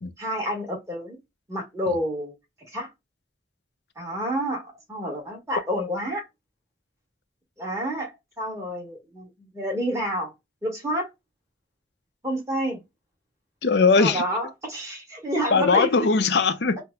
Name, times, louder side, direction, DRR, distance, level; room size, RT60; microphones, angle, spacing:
voice 1, 0.2-1.2 1.5-2.3 2.7-2.9 4.0-6.2 7.6-8.1 8.4-10.3 10.6-11.1 12.2-12.8 14.0-15.9, equal, 15° right, 1.3 m, -29 dB
voice 2, 13.6-14.2 15.5-16.8, left 4 dB, 65° left, 0.5 m, -20 dB
5.8 x 2.1 x 2.2 m
head